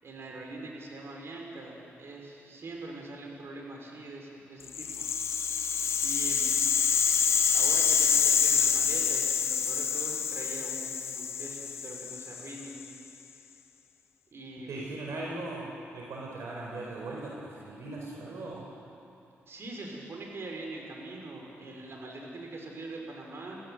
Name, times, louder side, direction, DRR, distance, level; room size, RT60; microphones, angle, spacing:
voice 1, 0.0-5.1 6.0-6.5 7.5-12.8 14.3-14.8 19.5-23.6, right 2 dB, 55° right, 0 dB, 6.0 m, -43 dB
Rattle (instrument), 4.7-12.9, left 7 dB, 65° left, 1.1 m, -27 dB
voice 2, 14.7-18.6, right 2 dB, 70° right, -3 dB, 4.9 m, -39 dB
29.5 x 15.5 x 8.2 m, 2.8 s
cardioid pair, 75°, 5 cm